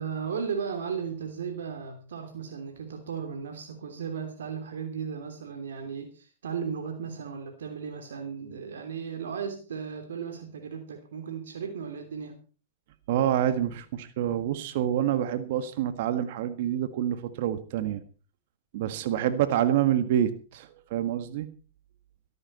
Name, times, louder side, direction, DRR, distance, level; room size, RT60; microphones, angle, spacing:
voice 1, 0.0-12.4, right 6 dB, 85° right, 6 dB, 3.0 m, -35 dB
voice 2, 13.1-18.0 18.7-21.5, right 11 dB, 65° right, 11 dB, 1.6 m, -27 dB
17.5 x 14.0 x 4.3 m, 0.37 s
hypercardioid pair, 115°, 0 cm